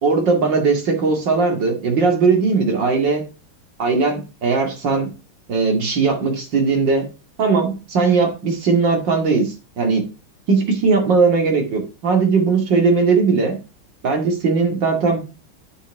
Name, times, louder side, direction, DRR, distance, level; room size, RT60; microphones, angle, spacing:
voice 1, 0.0-3.2 3.8-5.1 5.5-7.1 7.4-10.0 10.5-13.6 14.0-15.2, right 4 dB, 60° right, 3 dB, 2.8 m, -18 dB
8.7 x 5.2 x 4.8 m, 0.31 s
omnidirectional pair, 2.2 m